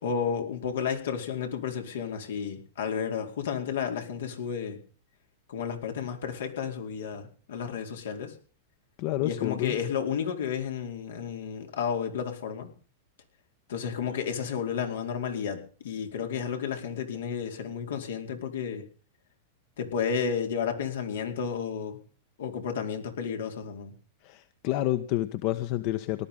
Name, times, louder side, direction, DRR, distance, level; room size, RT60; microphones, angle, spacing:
voice 1, 0.0-4.8 5.5-8.3 9.2-12.7 13.7-18.8 19.8-22.0 22.4-24.0, left 7 dB, 80° left, 4 dB, 4.7 m, -32 dB
voice 2, 9.0-9.7 24.2-26.3, left 15 dB, 50° left, 12 dB, 1.3 m, -29 dB
18.5 x 12.0 x 5.6 m, 0.43 s
hypercardioid pair, 125°, 0 cm